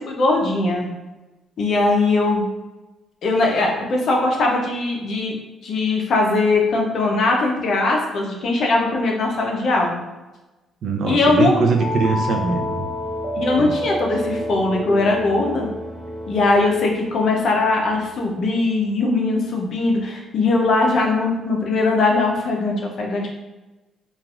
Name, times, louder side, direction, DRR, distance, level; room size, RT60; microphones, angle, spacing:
voice 1, 0.1-0.9 1.6-2.5 3.2-5.3 5.6-10.0 11.0-11.6 13.3-15.7 16.3-23.3, left 2 dB, 65° left, 0 dB, 0.6 m, -20 dB
voice 2, 10.8-12.9 13.6-13.7, right 4 dB, 65° right, 2 dB, 0.4 m, -22 dB
sound 1, 11.8-18.3, equal, 10° left, 0.7 m, -29 dB
3.2 x 2.3 x 2.4 m, 1.1 s
cardioid pair, 90°, 0 cm